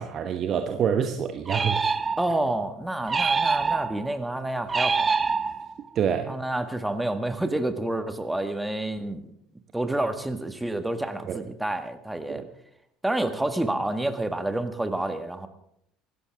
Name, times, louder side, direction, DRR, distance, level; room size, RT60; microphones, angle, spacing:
voice 1, 0.0-1.9 5.9-6.4 11.3-11.4 12.3-12.5, right 8 dB, 40° right, 7 dB, 1.2 m, -27 dB
sound 1, 1.5-2.5 3.1-4.1 4.7-5.9, right 4 dB, 20° right, 0.7 m, -25 dB
voice 2, 2.2-5.1 6.3-9.2 9.7-12.4 13.0-15.5, right 1 dB, 5° right, 8 dB, 1.7 m, -28 dB
25.5 x 13.5 x 3.6 m, 0.74 s
figure-of-eight pair, 60°, 0 cm